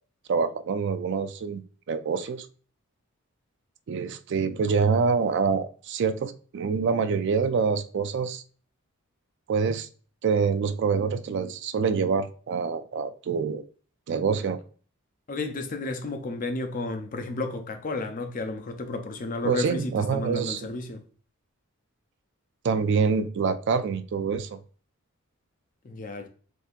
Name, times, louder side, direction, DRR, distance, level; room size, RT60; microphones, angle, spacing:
voice 1, 0.3-1.6 1.9-2.5 3.9-8.4 9.5-9.9 10.2-13.6 14.1-14.6 19.4-20.6 22.6-24.6, right 5 dB, 55° right, 0.3 m, -26 dB
voice 2, 15.3-21.0 25.8-26.3, left 2 dB, 40° left, 0.5 m, -32 dB
3.6 x 2.8 x 2.4 m
head